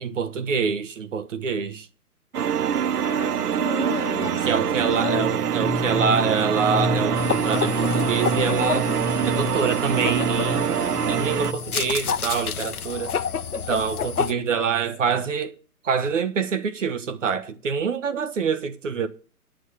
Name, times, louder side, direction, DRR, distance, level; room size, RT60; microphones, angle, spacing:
voice 1, 0.0-1.9 4.4-8.9 9.2-10.8 11.1-13.1 13.5-15.5 15.8-19.1, right 6 dB, 55° right, 1.3 m, -26 dB
sound 1, 2.3-11.5, right 9 dB, 80° right, 0.6 m, -25 dB
voice 2, 3.0-5.3 13.5-13.9 14.5-14.9, left 10 dB, 25° left, 1.4 m, -34 dB
sound 2, 4.2-11.9, left 2 dB, 5° right, 1.4 m, -31 dB
sound 3, 7.1-14.3, left 7 dB, 70° left, 0.9 m, -29 dB
11.0 x 6.5 x 6.4 m
figure-of-eight pair, 130°, 45 cm